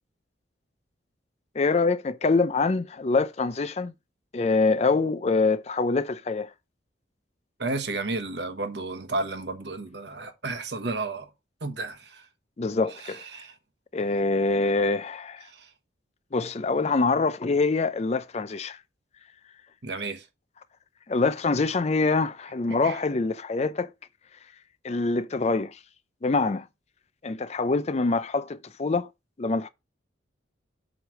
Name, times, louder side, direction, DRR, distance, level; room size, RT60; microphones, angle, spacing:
voice 1, 1.5-3.9 4.3-6.5 12.6-13.2 13.9-15.5 16.3-18.8 21.1-23.9 24.8-25.8 26.2-26.7 27.2-29.1 29.4-29.7, left 3 dB, 35° left, 0.4 m, -25 dB
voice 2, 7.6-11.3 11.6-12.3 13.0-13.5 15.5-15.7 19.8-20.3 22.7-23.0, right 3 dB, 60° right, 1.1 m, -32 dB
7.7 x 3.2 x 6.2 m
head